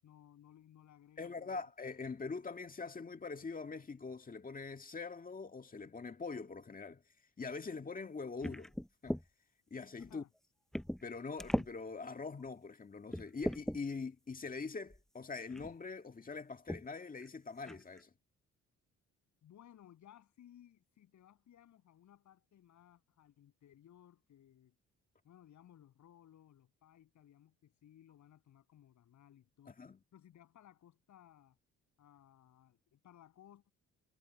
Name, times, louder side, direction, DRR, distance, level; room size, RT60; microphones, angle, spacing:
voice 1, 0.0-1.7 10.1-10.3 19.4-24.8 25.2-29.8 30.1-31.6 32.0-33.7, left 11 dB, 70° left, 7.8 m, -61 dB
voice 2, 1.2-7.0 7.4-8.7 9.0-9.2 9.7-10.2 11.0-18.1 29.7-30.0, left 4 dB, 30° left, 1.9 m, -43 dB
sound 1, 8.4-9.3 10.0-10.1 10.7-11.1 11.4-11.7 12.4-12.5 13.1-13.8 14.9-15.0 15.5-15.7 16.7-16.9 17.2-17.3 17.6-18.0, equal, ahead, 0.7 m, -38 dB
cardioid pair, 90°, 30 cm